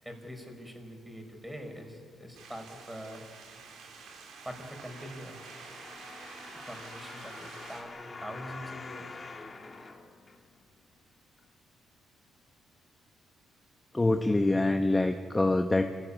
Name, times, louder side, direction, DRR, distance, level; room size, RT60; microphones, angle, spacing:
voice 1, 0.0-3.2 4.4-5.4 6.6-9.2, equal, 10° right, 4 dB, 5.0 m, -44 dB
sound 1, 2.3-7.8, right 5 dB, 80° right, 4.0 m, -49 dB
sound 2, 4.8-10.8 11.4-11.5, left 3 dB, 30° left, 2.1 m, -46 dB
voice 2, 13.9-15.9, left 2 dB, 15° left, 6 dB, 1.0 m, -25 dB
27.5 x 15.5 x 9.9 m, 2.1 s
cardioid pair, 90°, 0 cm